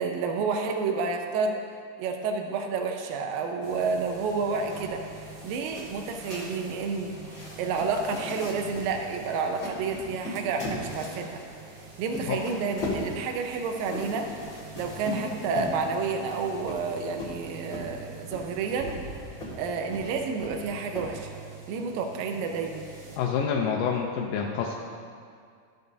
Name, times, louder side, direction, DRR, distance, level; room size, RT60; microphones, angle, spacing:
voice 1, 0.0-1.6 2.0-5.0 5.4-7.1 7.6-11.4 12.0-14.3 14.7-18.9 19.6-21.3 21.7-22.9, right 4 dB, 85° right, 3 dB, 2.4 m, -30 dB
sound 1, 3.6-23.2, right 4 dB, 55° right, 1.8 m, -46 dB
sound 2, 4.5-21.5, left 1 dB, 35° left, 1.6 m, -39 dB
voice 2, 23.2-24.8, left 6 dB, 80° left, -1 dB, 2.3 m, -27 dB
13.5 x 6.5 x 2.7 m, 2.2 s
omnidirectional pair, 4.0 m